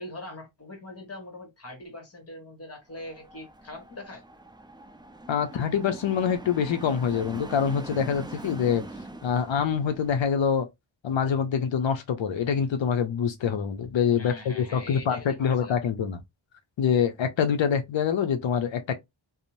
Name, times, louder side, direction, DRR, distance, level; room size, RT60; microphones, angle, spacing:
voice 1, 0.0-4.2 14.2-15.8, left 1 dB, 30° left, 1.1 m, -42 dB
sound 1, 2.9-10.3, right 2 dB, 10° right, 0.3 m, -43 dB
voice 2, 5.3-8.8 9.2-10.7 11.0-16.2 16.8-18.9, left 7 dB, 70° left, 0.5 m, -25 dB
2.6 x 2.0 x 2.9 m
wide cardioid pair, 80°, 48 cm